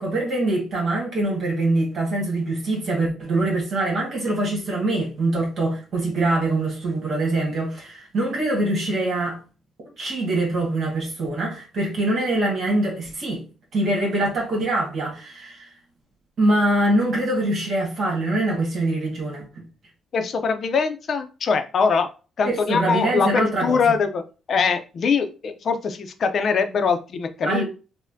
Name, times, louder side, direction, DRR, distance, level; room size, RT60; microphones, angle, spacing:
voice 1, 0.0-9.4 10.0-13.4 13.7-15.7 16.4-19.6 22.4-23.8 27.4-27.6, right 2 dB, 60° right, 1.4 m, -24 dB
voice 2, 20.1-22.1 22.4-24.2 24.5-27.6, left 5 dB, 55° left, 0.5 m, -22 dB
4.0 x 2.1 x 2.6 m
cardioid pair, 90°, 0 cm